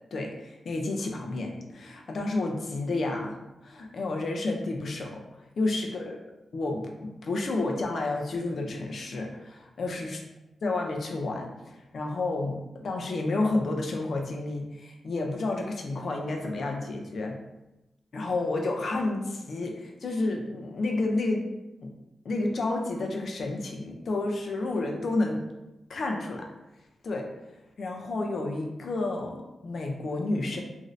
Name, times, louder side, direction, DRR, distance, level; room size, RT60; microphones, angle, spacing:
voice 1, 0.1-5.2 5.6-6.0 6.5-10.2 10.6-17.4 18.1-21.5 21.8-21.9 22.2-25.4 25.9-26.5 27.0-27.3 27.8-30.6, left 2 dB, 50° left, 1 dB, 0.5 m, -30 dB
3.1 x 2.6 x 2.5 m, 0.96 s
wide cardioid pair, 170°, 0 cm